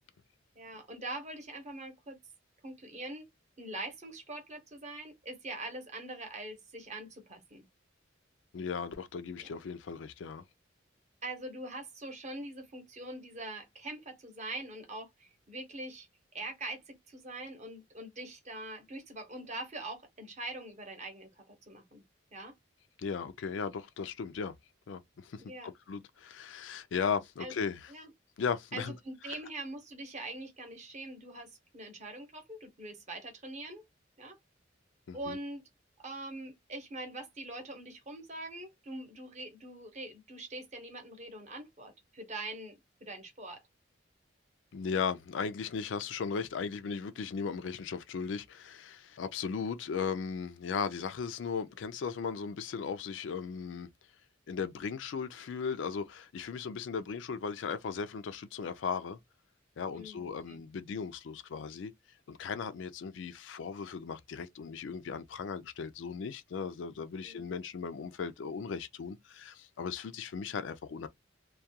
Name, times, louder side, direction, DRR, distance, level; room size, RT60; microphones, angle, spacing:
voice 1, 0.5-2.2 2.6-3.3 3.6-7.7 9.3-9.5 11.2-16.1 16.3-22.0 22.3-22.5 25.4-25.7 27.4-27.5 27.9-28.1 28.7-33.8 34.2-34.4 35.1-35.6 36.0-42.8 43.0-43.6 59.9-60.6 67.2-67.5, right 2 dB, 35° right, 0.9 m, -43 dB
voice 2, 8.5-10.4 23.0-24.5 24.9-27.9 28.4-29.0 29.3-29.4 35.1-35.4 44.7-53.9 54.5-59.2 59.8-61.9 62.3-71.1, left 6 dB, 65° left, 0.4 m, -37 dB
2.3 x 2.2 x 2.7 m
head